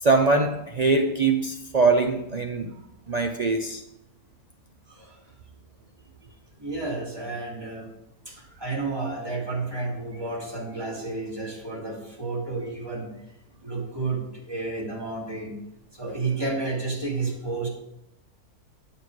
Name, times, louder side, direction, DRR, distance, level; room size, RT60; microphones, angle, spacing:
voice 1, 0.0-2.7 3.1-3.8, right 3 dB, 75° right, 3 dB, 0.3 m, -22 dB
voice 2, 4.9-5.3 6.5-7.9 8.3-13.4 13.6-15.6 15.9-17.7, right 3 dB, 15° right, -3 dB, 2.5 m, -31 dB
9.9 x 6.9 x 4.8 m, 0.82 s
omnidirectional pair, 1.7 m